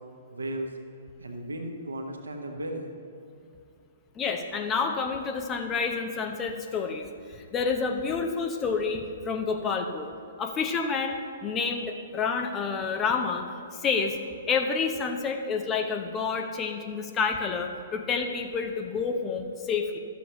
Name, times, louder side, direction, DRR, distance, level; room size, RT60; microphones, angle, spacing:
voice 1, 0.3-0.7 1.2-2.9, right 1 dB, 70° right, 3 dB, 1.0 m, -35 dB
voice 2, 4.2-10.1 10.4-13.4 13.7-14.2 14.5-20.0, left 5 dB, 20° left, 4 dB, 0.6 m, -29 dB
12.5 x 7.0 x 3.0 m, 2.5 s
figure-of-eight pair, 115°, 0 cm